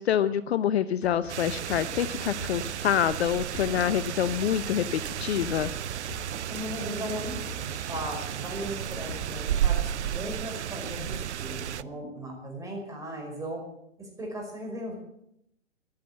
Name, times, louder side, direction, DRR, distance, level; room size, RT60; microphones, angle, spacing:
voice 1, 0.0-5.7, left 9 dB, 55° left, 15 dB, 0.8 m, -26 dB
sound 1, 1.0-10.3, left 3 dB, 85° left, 2.2 m, -45 dB
sound 2, 1.3-11.8, right 10 dB, 65° right, 0.7 m, -33 dB
voice 2, 6.5-13.6 14.0-15.0, right 1 dB, 10° right, 0 dB, 5.2 m, -37 dB
14.5 x 11.5 x 8.8 m, 0.75 s
figure-of-eight pair, 125°, 38 cm